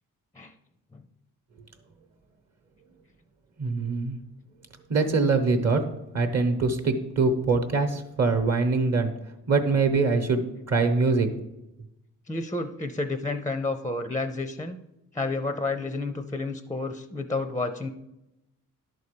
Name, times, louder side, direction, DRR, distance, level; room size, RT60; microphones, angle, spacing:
voice 1, 3.6-4.2 4.9-5.8 6.1-9.1 9.5-11.3, right 3 dB, 50° right, 5 dB, 1.0 m, -23 dB
voice 2, 12.3-14.8 15.1-17.9, left 3 dB, 10° left, 9 dB, 0.4 m, -30 dB
11.0 x 4.1 x 6.7 m, 0.92 s
cardioid pair, 120°, 34 cm